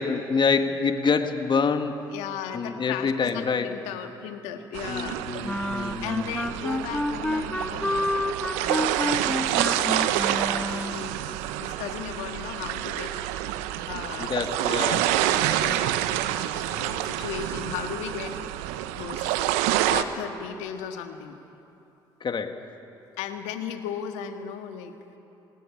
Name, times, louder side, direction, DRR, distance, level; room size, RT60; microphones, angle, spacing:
voice 1, 0.0-2.1 2.5-3.7 4.9-6.4 14.2-15.2 22.2-22.7, left 5 dB, 40° left, 7 dB, 1.8 m, -26 dB
voice 2, 2.1-5.3 6.0-8.3 8.6-11.1 11.6-13.2 13.9-14.3 15.4-16.0 16.7-18.3 19.0-19.4 19.9-21.4 23.2-25.0, left 8 dB, 75° left, 6 dB, 1.7 m, -36 dB
sound 1, 4.7-20.0, right 13 dB, 80° right, 0.9 m, -28 dB
sound 2, 5.4-11.1, left 1 dB, 10° left, 1.1 m, -29 dB
21.0 x 19.0 x 9.9 m, 2.8 s
hypercardioid pair, 55°, 12 cm